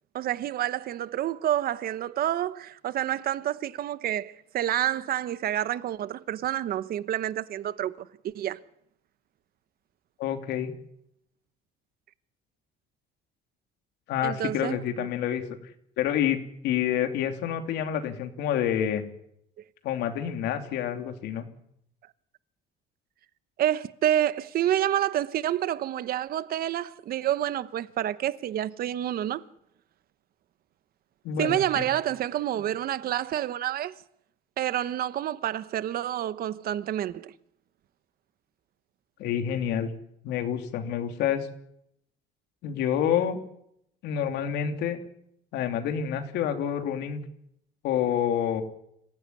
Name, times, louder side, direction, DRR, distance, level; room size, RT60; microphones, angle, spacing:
voice 1, 0.1-8.6 14.2-15.1 23.6-29.4 31.4-33.9 34.6-37.3, right 12 dB, 60° right, 1.1 m, -28 dB
voice 2, 10.2-10.7 14.1-15.4 16.0-16.4 16.6-19.0 19.8-21.5 31.2-31.9 39.2-39.9 40.2-41.5 42.6-43.4 44.0-45.0 45.5-47.2 47.8-48.6, left 9 dB, 85° left, 3.0 m, -28 dB
26.5 x 15.5 x 9.7 m
cardioid pair, 110°, 17 cm